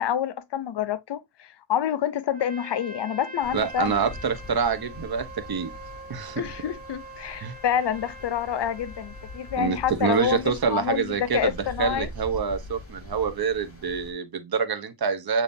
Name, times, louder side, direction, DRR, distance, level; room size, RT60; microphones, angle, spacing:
voice 1, 0.0-4.1 6.4-12.1, left 9 dB, 60° left, 0.6 m, -28 dB
Trumpet, 2.3-9.9, right 2 dB, 15° right, 1.1 m, -44 dB
sound 1, 3.4-14.1, left 2 dB, 30° left, 2.5 m, -43 dB
voice 2, 3.5-5.7 6.1-6.4 7.4-7.5 9.6-15.4, right 6 dB, 50° right, 0.9 m, -26 dB
6.9 x 2.9 x 2.6 m
cardioid pair, 75°, 48 cm